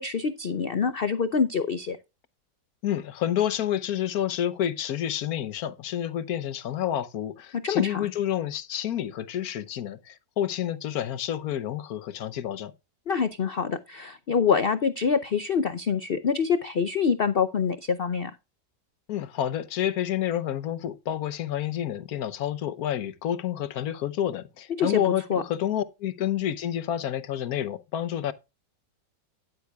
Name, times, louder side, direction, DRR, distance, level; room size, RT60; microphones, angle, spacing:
voice 1, 0.0-2.0 7.5-8.1 13.1-18.3 24.7-25.0 25.3-25.4, left 6 dB, 85° left, 0.5 m, -25 dB
voice 2, 2.8-12.7 19.1-28.3, left 11 dB, 65° left, 1.2 m, -29 dB
13.0 x 10.5 x 2.3 m
omnidirectional pair, 1.9 m